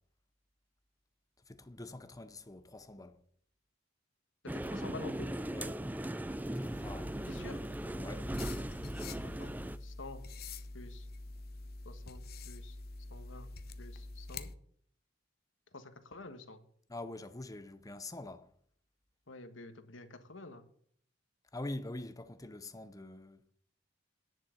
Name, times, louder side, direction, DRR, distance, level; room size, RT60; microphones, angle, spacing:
voice 1, 1.5-3.2 5.5-5.8 6.6-7.1 8.0-8.3 16.9-18.5 21.5-23.4, left 2 dB, 20° left, 0.8 m, -45 dB
voice 2, 4.4-5.3 7.3-7.6 9.2-9.5 9.8-10.2 10.7-11.1 11.8-12.8 13.1-13.5 13.8-14.5 15.7-16.6 19.3-20.6, left 2 dB, 85° left, 1.4 m, -49 dB
sound 1, 4.5-9.8, right 1 dB, 10° right, 0.4 m, -38 dB
sound 2, 6.7-14.6, left 3 dB, 55° left, 0.8 m, -46 dB
10.0 x 6.6 x 7.9 m
head